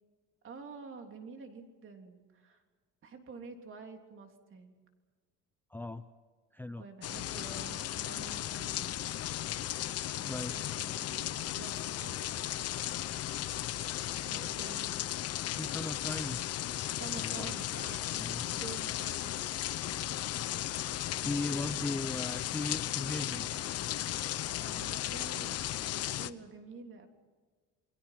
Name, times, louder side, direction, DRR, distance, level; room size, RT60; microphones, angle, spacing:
voice 1, 0.4-2.6 3.0-4.8 6.8-8.9 10.1-12.5 14.0-15.0 17.0-18.1 18.5-19.3 21.4-22.1 24.6-27.1, right 4 dB, 40° right, 5 dB, 3.4 m, -49 dB
voice 2, 5.7-6.0 6.5-6.8 10.3-10.7 15.5-16.5 17.1-17.5 18.1-18.5 21.2-23.5, left 2 dB, 5° left, 10 dB, 0.7 m, -37 dB
sound 1, 7.0-26.3, left 12 dB, 50° left, 1.0 m, -36 dB
29.5 x 22.0 x 5.9 m, 1.5 s
cardioid pair, 135°, 31 cm